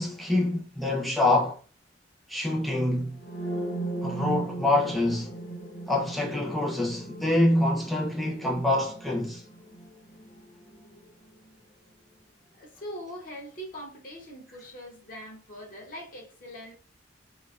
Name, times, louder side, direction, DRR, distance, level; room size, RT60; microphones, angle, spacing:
voice 1, 0.0-1.5 2.3-3.2 4.0-5.3 5.9-9.4, left 1 dB, ahead, 0.5 m, -26 dB
sound 1, 3.2-11.0, right 2 dB, 70° left, 0.8 m, -37 dB
voice 2, 12.6-16.7, equal, 45° left, 0.6 m, -42 dB
2.6 x 2.2 x 2.3 m
head